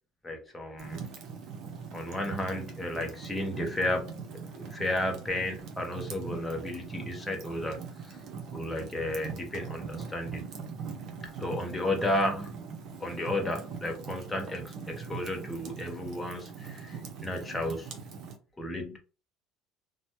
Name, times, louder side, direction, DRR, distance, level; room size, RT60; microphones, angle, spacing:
voice 1, 0.2-1.0 1.9-4.2 4.6-7.8 8.1-8.2 8.5-10.4 11.4-12.7 13.0-17.9 18.6-19.0, left 1 dB, 10° left, 0.8 m, -33 dB
Fire, 0.8-18.4, right 5 dB, 55° right, 0.8 m, -42 dB
2.9 x 2.3 x 2.8 m
cardioid pair, 125°, 0 cm